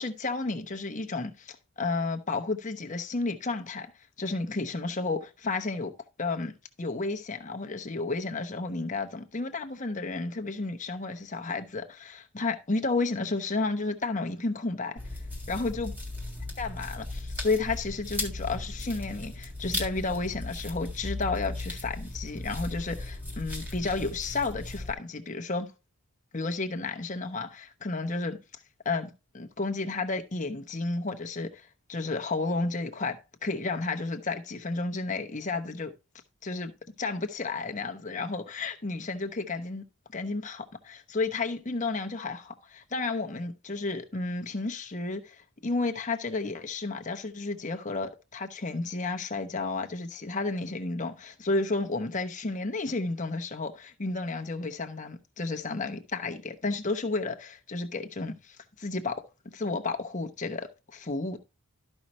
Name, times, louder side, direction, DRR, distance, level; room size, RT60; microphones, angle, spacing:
voice 1, 0.0-3.9 4.2-5.9 6.2-6.5 6.8-15.0 15.5-15.9 16.6-25.7 26.3-28.4 28.8-35.9 36.4-36.7 37.0-39.8 40.1-61.4, left 3 dB, 35° left, 0.9 m, -32 dB
sound 1, 15.0-24.9, left 2 dB, 10° right, 1.7 m, -37 dB
13.0 x 5.4 x 3.0 m
head